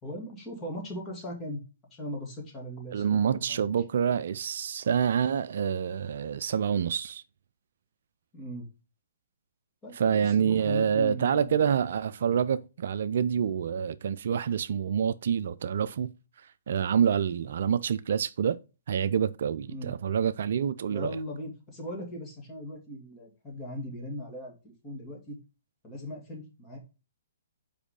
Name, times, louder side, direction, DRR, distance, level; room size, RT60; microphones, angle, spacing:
voice 1, 0.0-1.6 1.9-3.6 8.3-8.7 9.8-11.8 19.7-19.9 20.9-25.4 25.8-26.8, equal, 20° left, 2.4 m, -39 dB
voice 2, 2.9-7.2 9.9-16.1 16.4-18.6 18.9-21.2, right 8 dB, 60° right, 0.4 m, -27 dB
5.0 x 4.8 x 5.0 m
figure-of-eight pair, 125°, 0 cm